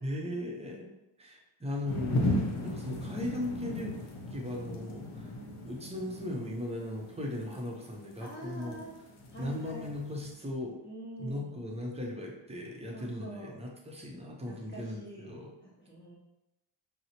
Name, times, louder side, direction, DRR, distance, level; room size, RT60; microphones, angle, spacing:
voice 1, 0.0-0.9 1.2-3.9 4.3-5.3 5.7-8.8 9.4-10.8 11.2-15.5, left 1 dB, 15° right, -1 dB, 0.5 m, -38 dB
sound 1, 1.8-10.3, left 1 dB, 85° left, 0.7 m, -36 dB
voice 2, 5.2-5.6 7.5-7.6 8.2-9.0 9.3-9.9 10.8-11.6 12.9-13.6 14.5-15.4 15.6-16.2, right 2 dB, 25° left, -8 dB, 0.7 m, -46 dB
4.1 x 2.0 x 2.8 m, 0.93 s
wide cardioid pair, 95°, 49 cm